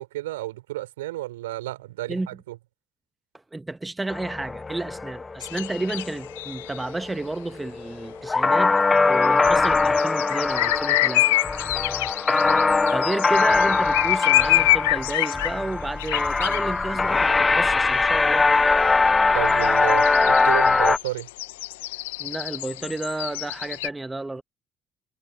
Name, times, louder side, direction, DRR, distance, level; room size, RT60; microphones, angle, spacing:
voice 1, 0.0-2.6 19.3-21.3, right 16 dB, 80° right, 4.1 m, -31 dB
voice 2, 3.5-11.3 12.9-18.5 22.2-24.4, right 2 dB, 15° right, 1.4 m, -31 dB
sound 1, 4.1-21.0, left 3 dB, 25° left, 0.3 m, -22 dB
sound 2, 5.4-6.8 9.2-15.6 16.0-16.6 17.8-17.9 18.1-18.2 18.5-18.6 19.1-23.9, left 18 dB, 75° left, 1.3 m, -26 dB
figure-of-eight pair, 50°, 0 cm